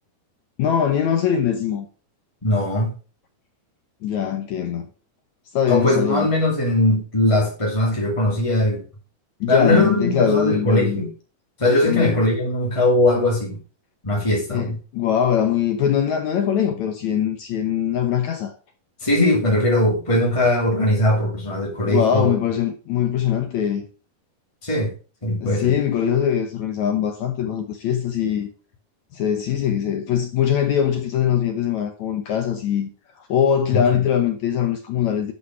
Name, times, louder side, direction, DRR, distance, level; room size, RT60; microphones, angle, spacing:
voice 1, 0.6-1.9 4.0-4.9 5.5-6.3 9.4-11.0 11.8-12.2 14.5-18.5 21.8-23.8 25.4-28.5 29.1-32.9 33.2-35.3, left 9 dB, 70° left, 1.8 m, -22 dB
voice 2, 2.4-2.9 5.7-8.8 9.5-11.1 11.6-13.6 14.0-14.8 19.0-22.3 24.6-24.9 25.2-25.7 33.7-34.0, left 1 dB, 10° left, 1.6 m, -20 dB
11.5 x 5.4 x 4.7 m
omnidirectional pair, 4.5 m